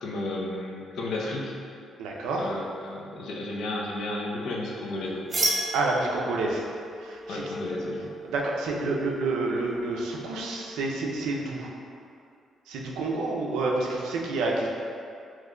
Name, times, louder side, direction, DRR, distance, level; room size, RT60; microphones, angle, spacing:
voice 1, 0.0-1.5 2.4-5.2 7.3-8.1, left 2 dB, 75° left, -2 dB, 0.5 m, -33 dB
voice 2, 2.0-2.5 5.7-6.7 7.0-7.5 8.2-11.7 12.7-14.7, right 2 dB, 90° right, -1 dB, 0.4 m, -29 dB
sound 1, 5.3-10.9, right 1 dB, 45° right, 0.7 m, -34 dB
2.9 x 2.2 x 3.6 m, 2.4 s
cardioid pair, 90°, 0 cm